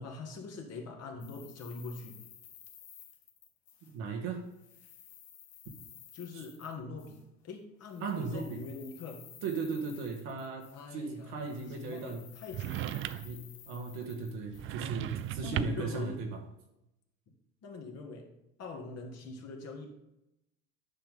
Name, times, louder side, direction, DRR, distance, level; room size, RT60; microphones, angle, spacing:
voice 1, 0.0-2.2 6.1-7.2 7.4-9.3 10.7-12.9 15.4-16.2 17.6-18.3 18.6-19.9, left 3 dB, 45° left, 2 dB, 1.8 m, -43 dB
sound 1, 1.2-4.2 4.4-7.2 7.8-11.1 11.4-15.3, left 9 dB, 65° left, 1.5 m, -55 dB
voice 2, 3.8-4.5 5.6-5.7 6.3-6.4 8.0-8.6 9.4-12.2 13.2-16.4, right 4 dB, 65° right, 2 dB, 1.7 m, -37 dB
sound 2, 12.5-13.4 14.5-16.0, right 12 dB, 35° right, 0.4 m, -36 dB
10.0 x 6.0 x 3.5 m, 0.88 s
hypercardioid pair, 75°, 36 cm